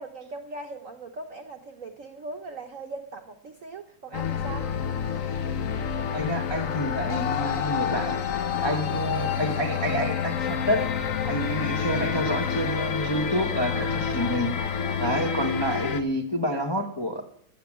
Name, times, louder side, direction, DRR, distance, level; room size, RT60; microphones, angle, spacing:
voice 1, 0.0-4.7 15.0-15.3, right 3 dB, 60° right, 0.9 m, -40 dB
sound 1, 4.1-16.0, left 7 dB, 60° left, 0.8 m, -28 dB
voice 2, 6.1-8.2 8.5-11.0 11.2-14.5 15.0-17.2, equal, 35° left, 0.4 m, -28 dB
14.5 x 8.5 x 7.3 m
omnidirectional pair, 2.4 m